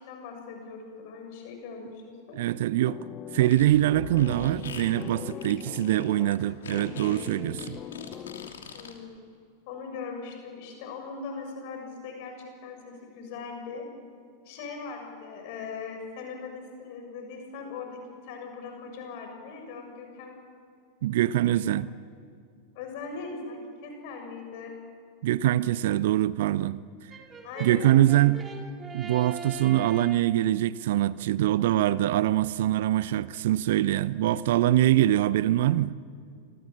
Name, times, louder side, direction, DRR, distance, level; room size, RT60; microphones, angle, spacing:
voice 1, 0.0-2.4 8.7-9.1 9.7-13.8 14.5-20.4 21.4-21.8 22.7-24.8 27.4-27.9, left 4 dB, 50° left, 6.9 m, -40 dB
voice 2, 2.3-3.0 3.3-7.8 21.0-21.9 25.2-26.8 27.6-28.4 28.9-35.9, right 13 dB, 55° right, 0.7 m, -24 dB
sound 1, 2.9-8.8, left 10 dB, 30° left, 1.0 m, -41 dB
Fart, 3.4-8.9, left 5 dB, 65° left, 3.0 m, -42 dB
Brass instrument, 27.1-30.4, right 5 dB, 20° right, 3.7 m, -41 dB
28.0 x 23.0 x 7.3 m
figure-of-eight pair, 90°, 0 cm